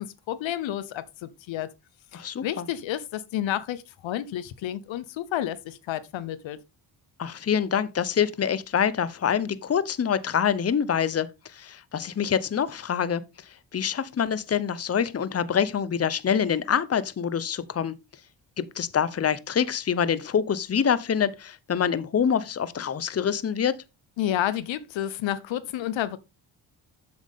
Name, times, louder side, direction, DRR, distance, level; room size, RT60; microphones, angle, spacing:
voice 1, 0.0-1.7 2.1-6.6 24.2-26.2, left 12 dB, 80° left, 0.9 m, -30 dB
voice 2, 2.1-2.7 7.2-13.2 13.7-17.9 18.6-23.7, left 8 dB, 35° left, 0.8 m, -26 dB
7.7 x 7.1 x 3.6 m
cardioid pair, 70°, 45 cm